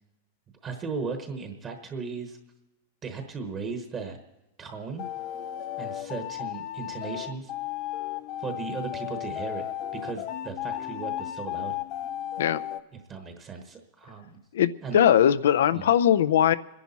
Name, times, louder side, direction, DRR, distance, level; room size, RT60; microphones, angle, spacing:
voice 1, 0.6-2.4 3.0-4.2 4.6-5.0 5.8-7.5 8.4-11.7 13.1-14.4 14.8-15.0 15.7-15.9, right 4 dB, 20° right, 5 dB, 1.1 m, -36 dB
sound 1, 5.0-12.8, left 12 dB, 30° left, 0.5 m, -34 dB
voice 2, 14.5-16.5, left 10 dB, 90° left, 14 dB, 0.6 m, -20 dB
25.5 x 10.5 x 4.2 m, 0.95 s
supercardioid pair, 175°, 0 cm